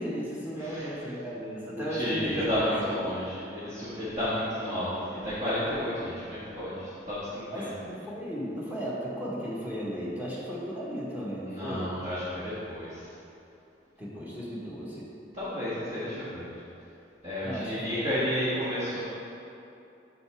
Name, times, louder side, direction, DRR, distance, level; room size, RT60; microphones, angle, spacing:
voice 1, 0.0-2.4 2.9-3.1 7.5-12.0 14.0-15.1 17.4-18.1, equal, 10° right, -6 dB, 1.2 m, -35 dB
voice 2, 0.5-0.9 1.8-7.7 11.5-13.1 15.3-16.5 17.2-19.0, equal, 35° right, -13 dB, 1.6 m, -31 dB
8.0 x 5.7 x 3.4 m, 2.7 s
head